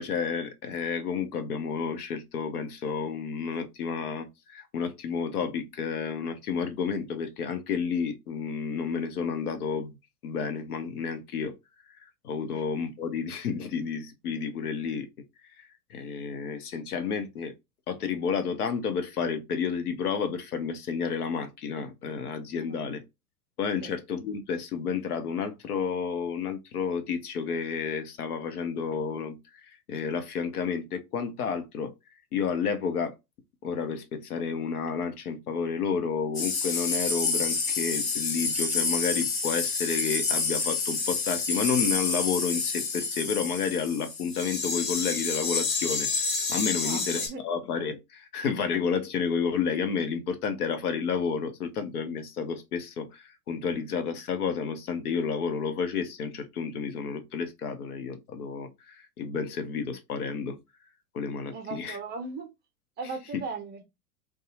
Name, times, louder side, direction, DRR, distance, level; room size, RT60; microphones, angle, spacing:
voice 1, 0.0-9.9 10.2-11.5 12.0-15.1 15.6-17.5 17.9-23.0 23.6-31.9 32.3-33.1 33.6-60.6 61.1-62.0, left 6 dB, 70° left, 0.8 m, -31 dB
sound 1, 36.3-47.3, left 4 dB, 35° left, 0.9 m, -29 dB
voice 2, 46.8-47.4 61.5-62.5 63.0-63.8, right 4 dB, 20° right, 0.5 m, -37 dB
2.7 x 2.3 x 2.5 m
figure-of-eight pair, 95°, 46 cm